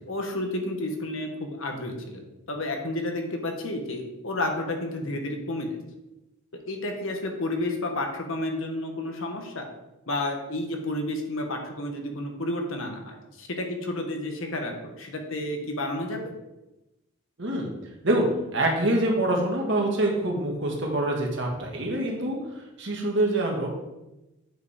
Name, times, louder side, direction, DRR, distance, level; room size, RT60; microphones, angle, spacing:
voice 1, 0.1-2.2 2.5-5.8 6.7-9.7 10.1-16.3, left 1 dB, 70° left, 3 dB, 1.3 m, -31 dB
voice 2, 17.4-17.7 18.0-22.4 22.8-23.7, right 1 dB, 55° right, 0 dB, 1.7 m, -25 dB
7.9 x 4.9 x 5.1 m, 0.99 s
head